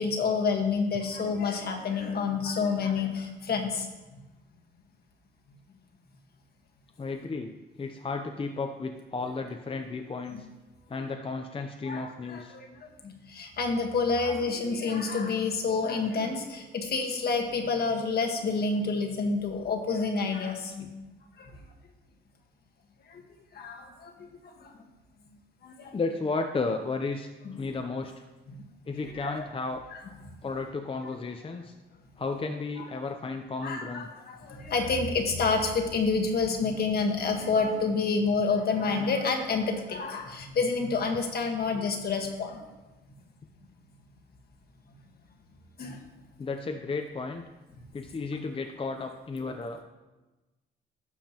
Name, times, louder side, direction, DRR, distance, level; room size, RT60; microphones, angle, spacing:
voice 1, 0.0-3.9 4.1-4.2 10.3-10.4 11.8-20.9 21.4-21.5 23.1-23.2 23.5-24.1 24.4-24.7 25.6-25.9 27.4-27.5 28.5-28.6 28.9-29.4 33.6-42.6 45.8-46.0, left 4 dB, 55° left, 3 dB, 1.5 m, -29 dB
voice 2, 7.0-10.5 10.9-12.6 25.9-28.2 28.9-29.8 30.4-31.7 32.2-34.1 46.4-47.5 47.9-49.8, left 3 dB, 25° left, 5 dB, 0.6 m, -33 dB
12.0 x 7.2 x 3.0 m, 1.1 s
cardioid pair, 90°, 20 cm